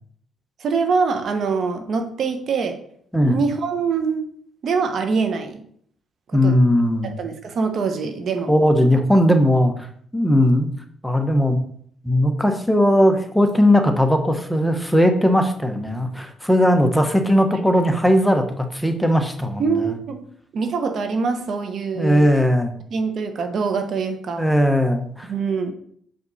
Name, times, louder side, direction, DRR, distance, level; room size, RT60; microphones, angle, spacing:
voice 1, 0.6-2.8 3.2-4.3 4.6-5.6 6.3-6.6 7.0-8.5 17.5-17.6 19.6-20.2 20.5-22.3 22.9-24.4 25.3-25.7, right 5 dB, 60° right, 7 dB, 0.9 m, -24 dB
voice 2, 6.3-7.2 8.5-9.9 10.1-10.7 11.0-11.6 12.0-19.9 22.0-22.7 24.4-25.3, equal, ahead, 5 dB, 1.0 m, -18 dB
6.8 x 5.2 x 4.1 m, 0.62 s
cardioid pair, 90°, 0 cm